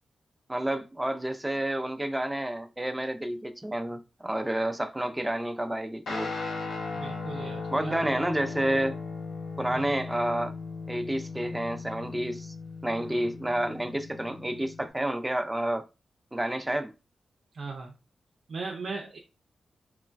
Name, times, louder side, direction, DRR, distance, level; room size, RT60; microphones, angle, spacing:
voice 1, 0.5-6.3 7.7-9.0 9.6-10.5 10.9-12.5 12.8-15.9 16.3-16.9, right 1 dB, 15° right, 0.4 m, -30 dB
Guitar, 6.1-14.9, left 4 dB, 80° left, 0.7 m, -37 dB
voice 2, 7.0-8.0 9.7-9.9 17.5-17.9 18.5-19.2, right 4 dB, 75° right, 0.5 m, -37 dB
3.1 x 2.1 x 2.4 m
cardioid pair, 50°, 0 cm